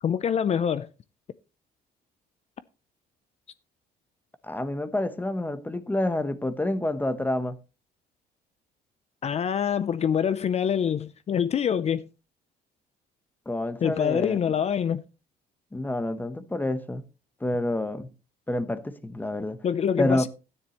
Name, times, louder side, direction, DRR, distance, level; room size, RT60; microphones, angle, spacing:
voice 1, 0.0-0.9 9.2-12.1 13.8-15.0 19.6-20.3, left 8 dB, 40° left, 0.5 m, -25 dB
voice 2, 4.4-7.6 13.5-14.4 15.7-17.0 17.4-18.1 18.5-19.6 20.0-20.2, left 1 dB, 10° left, 0.9 m, -28 dB
13.0 x 9.8 x 3.0 m
cardioid pair, 110°, 17 cm